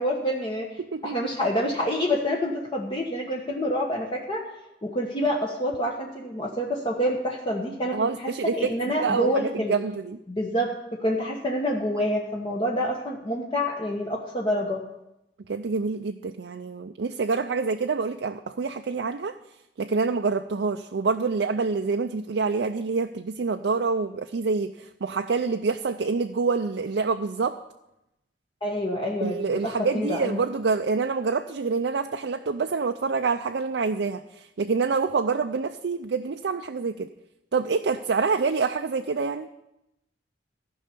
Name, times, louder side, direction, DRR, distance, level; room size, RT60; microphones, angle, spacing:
voice 1, 0.0-0.7 1.0-4.5 4.8-8.3 8.6-9.8 10.3-10.7 11.0-14.8 28.6-30.4, equal, 30° left, -1 dB, 1.1 m, -27 dB
voice 2, 0.8-1.2 7.9-10.2 15.5-19.4 19.8-27.6 29.2-37.1 37.5-39.5, right 4 dB, 70° right, 6 dB, 0.5 m, -27 dB
14.5 x 5.6 x 6.7 m, 0.87 s
head